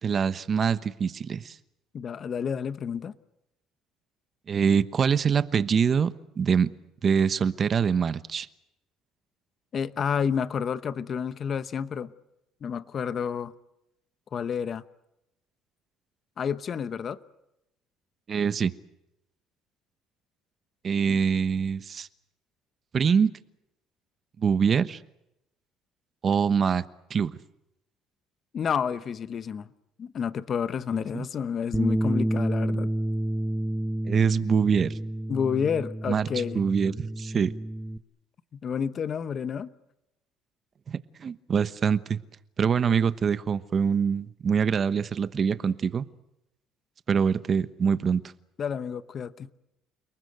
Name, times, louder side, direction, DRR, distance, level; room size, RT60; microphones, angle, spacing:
voice 1, 0.0-1.6 4.5-6.7 7.0-8.5 18.3-18.7 20.8-22.1 22.9-23.3 24.4-25.0 26.2-26.8 27.1-27.4 31.1-31.3 34.1-35.0 36.1-36.3 36.5-37.5 40.9-42.2 42.6-46.0 47.1-48.2, right 6 dB, 40° right, 1.1 m, -24 dB
voice 2, 1.9-3.1 9.7-12.1 12.6-13.5 14.3-14.8 16.4-17.2 21.1-21.2 28.5-29.7 30.0-32.9 35.3-36.6 38.5-39.7 48.6-49.5, left 7 dB, 40° left, 0.9 m, -30 dB
Bass guitar, 31.7-38.0, right 1 dB, ahead, 1.0 m, -29 dB
30.0 x 19.5 x 8.0 m
cardioid pair, 110°, 0 cm